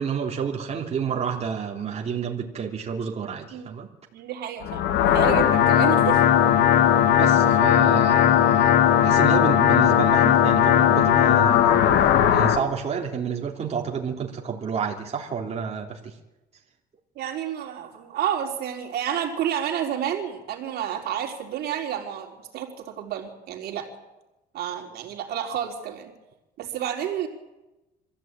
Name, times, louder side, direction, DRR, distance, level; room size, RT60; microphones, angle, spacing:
voice 1, 0.0-3.9 7.2-8.8 9.0-11.8 12.3-16.2, right 6 dB, 40° right, 0 dB, 3.3 m, -30 dB
voice 2, 4.1-6.3 17.2-23.9 24.5-26.1 26.6-27.3, right 10 dB, 70° right, 2 dB, 4.0 m, -30 dB
sound 1, 4.6-12.6, left 10 dB, 85° left, 2.0 m, -18 dB
25.5 x 15.5 x 9.0 m, 1.0 s
cardioid pair, 110°, 17 cm